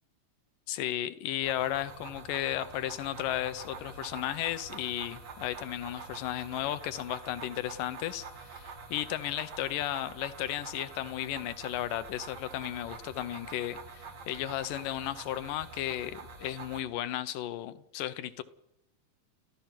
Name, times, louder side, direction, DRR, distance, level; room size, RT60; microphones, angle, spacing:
voice 1, 0.7-18.4, left 13 dB, 75° left, 13 dB, 2.5 m, -34 dB
sound 1, 1.4-16.8, right 4 dB, 45° right, 2.8 m, -46 dB
29.5 x 14.5 x 6.0 m, 0.84 s
omnidirectional pair, 4.0 m